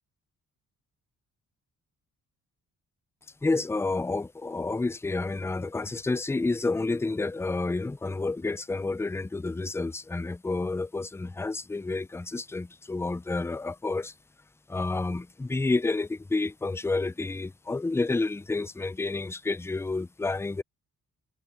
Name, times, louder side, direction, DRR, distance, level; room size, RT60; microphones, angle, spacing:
voice 1, 3.4-14.1 14.7-20.6, left 3 dB, 10° left, 0.4 m, -29 dB
cardioid pair, 90°, 35 cm